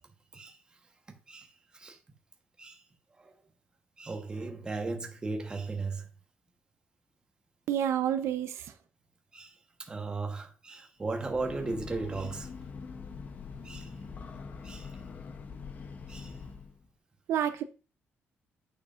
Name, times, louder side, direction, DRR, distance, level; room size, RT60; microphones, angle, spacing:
voice 1, 1.3-2.0 2.6-2.8 3.2-3.3 4.0-6.1 9.3-12.5 13.6-13.9 14.6-15.0 16.1-16.4, right 3 dB, 20° right, 1.1 m, -36 dB
voice 2, 7.7-8.7 17.3-17.6, right 10 dB, 90° right, 0.7 m, -29 dB
Breathing / Train, 11.1-16.8, left 5 dB, 40° left, 0.8 m, -43 dB
8.6 x 6.7 x 2.5 m
cardioid pair, 165°, 4 cm